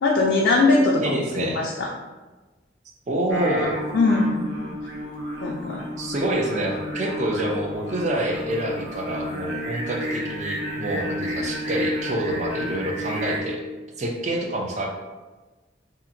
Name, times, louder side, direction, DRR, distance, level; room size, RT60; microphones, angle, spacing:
voice 1, 0.0-1.9 3.9-4.4 5.4-5.8, left 3 dB, 75° left, -2 dB, 0.4 m, -21 dB
voice 2, 1.0-1.6 3.1-3.8 6.0-13.6 14.0-14.9, right 1 dB, 40° right, 0 dB, 0.4 m, -27 dB
Singing, 3.3-13.4, equal, 80° right, 0.7 m, -31 dB
2.7 x 2.4 x 2.6 m, 1.2 s
head